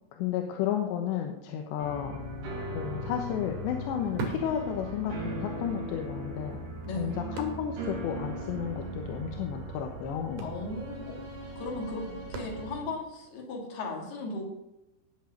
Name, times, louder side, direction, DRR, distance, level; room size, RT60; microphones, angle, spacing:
voice 1, 0.2-2.2 2.7-6.6 7.0-10.5, left 9 dB, 75° left, 3 dB, 3.2 m, -32 dB
sound 1, 1.8-12.8, right 1 dB, 75° right, 6.9 m, -39 dB
sound 2, 2.4-2.5 2.8-5.4 5.8-5.9 6.5-8.0 8.3-8.4 8.6-8.9 9.7-9.9 10.2-13.0 13.6-13.7, right 3 dB, 55° right, 2.6 m, -41 dB
voice 2, 6.9-7.2 10.4-11.2 11.6-14.4, left 2 dB, 60° left, 0 dB, 4.7 m, -36 dB
19.0 x 7.4 x 6.4 m, 0.90 s
omnidirectional pair, 5.4 m